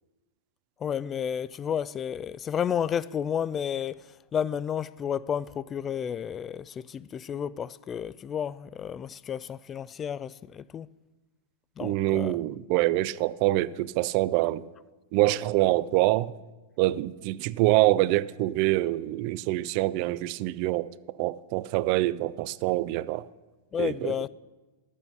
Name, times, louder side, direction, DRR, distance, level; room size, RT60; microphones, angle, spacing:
voice 1, 0.8-4.1 4.3-10.9 11.8-12.4 23.7-24.3, left 8 dB, 25° left, 0.3 m, -31 dB
voice 2, 11.8-14.7 15.1-16.3 16.8-23.3 23.8-24.2, right 17 dB, 50° right, 0.4 m, -25 dB
12.0 x 8.4 x 5.2 m
hypercardioid pair, 105°, 0 cm